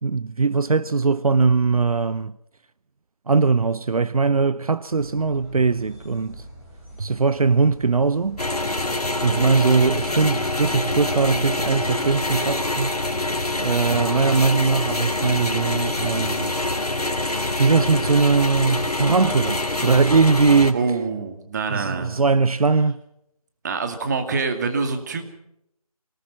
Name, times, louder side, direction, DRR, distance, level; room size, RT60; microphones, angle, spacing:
voice 1, 0.0-2.3 3.3-6.4 7.0-8.4 9.2-12.9 13.6-16.5 17.6-20.9 21.7-23.0, right 4 dB, 70° right, 0.7 m, -20 dB
sound 1, 4.9-13.2, equal, 10° right, 4.3 m, -46 dB
sound 2, 8.4-20.7, left 2 dB, 85° left, 3.0 m, -25 dB
voice 2, 20.7-22.2 23.6-25.2, right 4 dB, 30° right, 2.2 m, -26 dB
25.0 x 18.5 x 5.9 m
figure-of-eight pair, 160°, 19 cm